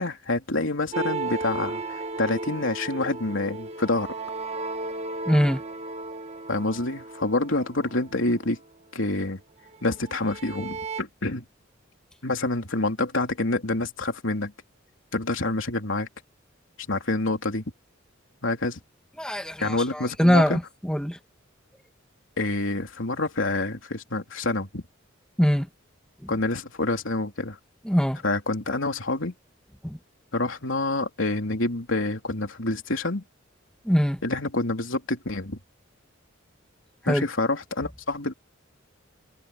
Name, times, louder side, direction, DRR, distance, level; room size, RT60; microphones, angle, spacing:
voice 1, 0.0-4.1 6.5-8.6 8.9-9.4 9.8-11.4 12.2-14.5 15.1-16.1 16.9-17.6 18.4-18.8 19.6-20.6 22.4-24.8 26.3-27.6 28.2-29.3 30.3-33.2 34.2-35.6 37.0-38.3, left 2 dB, 75° left, 3.4 m, -27 dB
sound 1, 0.9-8.6 9.7-11.0, right 3 dB, 35° right, 1.7 m, -35 dB
voice 2, 5.3-5.6 19.2-21.2 25.4-25.7 27.9-28.2 29.8-30.0 33.9-34.2 37.1-37.3, equal, 5° left, 1.7 m, -22 dB
head